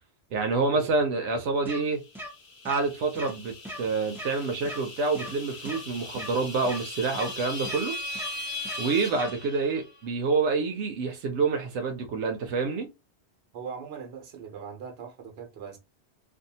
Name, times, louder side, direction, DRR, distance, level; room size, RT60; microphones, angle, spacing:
voice 1, 0.3-2.0 2.6-7.9 8.8-12.9, right 4 dB, 90° right, 0.9 m, -27 dB
sound 1, 1.7-1.8 2.2-2.3 2.7-2.8 3.2-3.3 3.6-3.8 4.2-4.3 4.7-4.8 5.2-5.3 5.7-5.8 6.2-6.3 6.7-6.8 7.2-7.3 7.7-7.8 8.2-8.3 8.7-8.8 9.2-9.3, equal, 5° right, 0.5 m, -38 dB
sound 2, 2.0-10.1, left 2 dB, 90° left, 1.3 m, -39 dB
voice 2, 13.5-15.8, right 7 dB, 65° right, 1.0 m, -40 dB
2.6 x 2.3 x 2.7 m
omnidirectional pair, 1.2 m